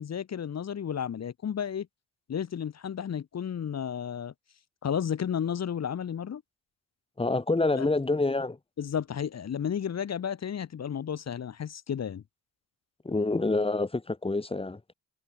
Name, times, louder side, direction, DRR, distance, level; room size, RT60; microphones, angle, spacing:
voice 1, 0.0-1.9 2.3-4.3 4.8-6.4 7.7-7.9 8.8-12.2, left 8 dB, 35° left, 0.8 m, -32 dB
voice 2, 7.2-8.6 13.0-14.9, left 2 dB, 15° left, 1.0 m, -27 dB
hypercardioid pair, 50°, 44 cm